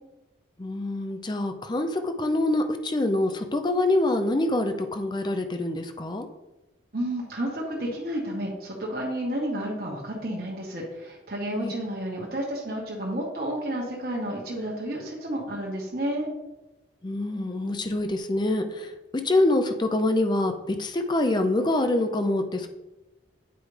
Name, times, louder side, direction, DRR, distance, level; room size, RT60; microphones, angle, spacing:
voice 1, 0.6-6.3 11.6-11.7 17.0-18.9 19.2-22.7, left 2 dB, 25° left, 6 dB, 0.5 m, -25 dB
voice 2, 6.9-16.3, right 1 dB, 50° right, -3 dB, 1.2 m, -31 dB
9.1 x 4.8 x 3.3 m, 1.0 s
head